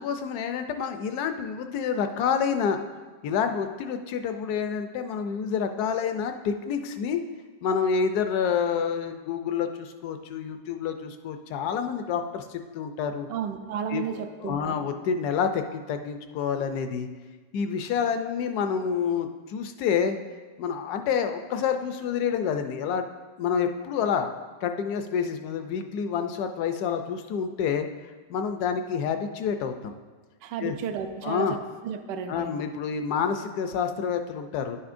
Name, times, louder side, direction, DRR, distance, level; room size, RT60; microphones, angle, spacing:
voice 1, 0.0-2.8 3.2-7.2 7.6-13.3 13.9-14.1 14.4-17.1 17.5-20.2 20.6-23.1 23.4-24.3 24.6-27.9 28.3-29.9 30.6-30.8 31.2-31.5 32.3-34.8, left 7 dB, 70° left, 7 dB, 1.0 m, -28 dB
voice 2, 13.3-14.8 30.4-32.5, right 7 dB, 85° right, 7 dB, 1.2 m, -33 dB
10.5 x 7.0 x 2.5 m, 1.4 s
omnidirectional pair, 1.9 m